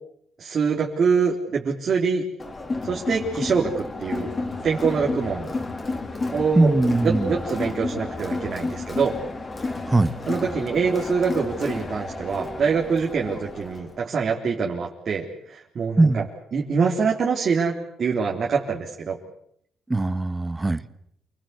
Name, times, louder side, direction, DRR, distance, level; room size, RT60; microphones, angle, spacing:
voice 1, 0.4-2.2 2.8-4.3 4.6-5.5 6.3-6.7 7.0-9.2 10.3-16.2 16.5-17.7 18.0-19.2, right 5 dB, 50° right, -2 dB, 3.7 m, -24 dB
Crowd, 2.4-13.9, left 3 dB, 30° left, 4.0 m, -31 dB
voice 2, 6.5-7.4 9.8-10.1 16.0-16.2 19.9-20.8, right 2 dB, 15° right, 14 dB, 1.4 m, -20 dB
28.5 x 20.5 x 8.3 m, 0.72 s
cardioid pair, 90°, 0 cm